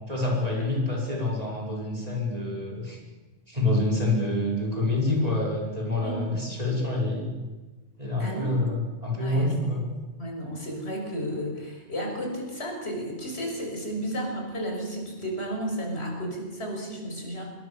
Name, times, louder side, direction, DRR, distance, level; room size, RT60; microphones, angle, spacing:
voice 1, 0.1-3.0 3.5-7.3 8.0-9.8, left 2 dB, 30° right, -2 dB, 5.6 m, -27 dB
voice 2, 8.2-8.6 9.2-9.5 10.2-17.4, equal, 60° left, 1 dB, 6.4 m, -33 dB
26.0 x 22.5 x 7.2 m, 1.2 s
omnidirectional pair, 1.2 m